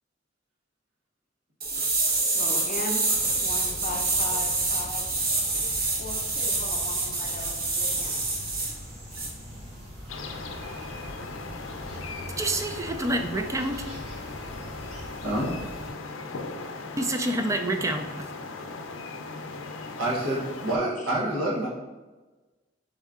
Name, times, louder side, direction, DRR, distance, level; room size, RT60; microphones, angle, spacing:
sound 1, 1.6-8.7 9.1-9.3, right 3 dB, 50° right, 0.9 m, -27 dB
voice 1, 2.3-3.1 3.4-5.0 6.0-8.1 21.0-21.1, left 2 dB, 40° left, 1 dB, 0.6 m, -37 dB
sound 2, 3.1-15.9, equal, 35° right, 1.2 m, -42 dB
sound 3, 10.1-20.8, left 3 dB, 90° left, 0.5 m, -38 dB
voice 2, 12.4-13.9 17.0-18.3, right 1 dB, 15° right, 6 dB, 0.3 m, -28 dB
voice 3, 20.0-21.7, right 1 dB, 85° right, -4 dB, 1.0 m, -27 dB
4.1 x 3.6 x 3.6 m, 1.2 s
head